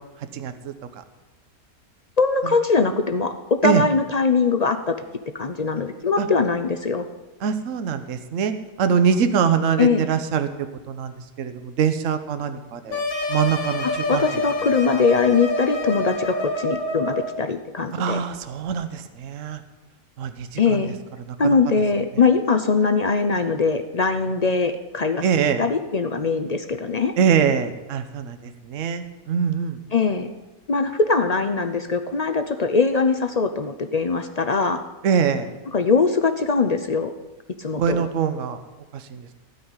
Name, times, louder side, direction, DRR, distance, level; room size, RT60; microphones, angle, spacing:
voice 1, 0.2-0.7 3.6-3.8 6.2-6.3 7.4-10.5 10.9-13.0 13.3-14.2 17.9-19.6 20.2-20.8 21.3-21.6 25.2-25.6 27.2-29.8 35.0-35.5 37.8-38.6 38.9-39.3, right 7 dB, 60° right, 9 dB, 1.2 m, -23 dB
voice 2, 2.2-3.3 3.6-4.9 5.3-7.1 9.8-10.1 13.8-18.2 20.6-20.9 21.4-25.2 25.6-27.1 29.9-30.3 30.7-34.8 35.7-37.1 37.6-38.1, left 4 dB, 55° left, 8 dB, 0.4 m, -21 dB
sound 1, 12.9-17.4, left 1 dB, 75° left, 2.0 m, -27 dB
16.5 x 5.6 x 9.7 m, 1.1 s
omnidirectional pair, 1.6 m